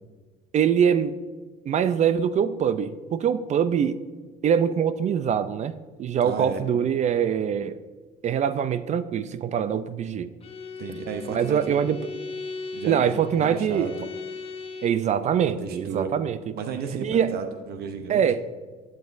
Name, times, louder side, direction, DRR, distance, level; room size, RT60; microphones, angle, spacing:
voice 1, 0.5-1.1 1.7-4.0 4.4-5.7 6.0-7.8 8.2-10.3 11.3-12.0 12.9-13.9 14.8-16.4 17.0-17.4 18.1-18.4, right 8 dB, 45° right, 14 dB, 0.4 m, -23 dB
voice 2, 6.2-6.6 10.8-11.7 12.7-14.1 15.6-16.1 16.6-18.2, right 6 dB, 70° right, 7 dB, 0.8 m, -33 dB
Bowed string instrument, 10.4-15.1, left 4 dB, 35° left, 0.8 m, -37 dB
11.5 x 7.4 x 2.5 m, 1.4 s
cardioid pair, 110°, 17 cm